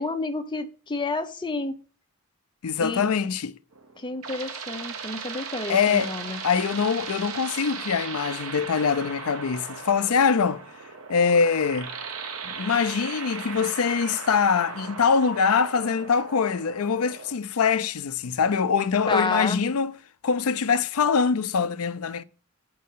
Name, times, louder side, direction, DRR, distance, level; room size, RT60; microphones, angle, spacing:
voice 1, 0.0-1.8 2.8-3.1 4.0-6.4 19.1-19.6, left 3 dB, 20° left, 0.7 m, -29 dB
voice 2, 2.6-3.6 5.7-6.1 6.4-10.6 11.1-11.9 12.4-19.9 20.2-22.2, left 6 dB, 80° left, 0.5 m, -23 dB
sound 1, 3.7-17.3, right 5 dB, 75° right, 1.1 m, -37 dB
8.6 x 4.7 x 5.6 m
head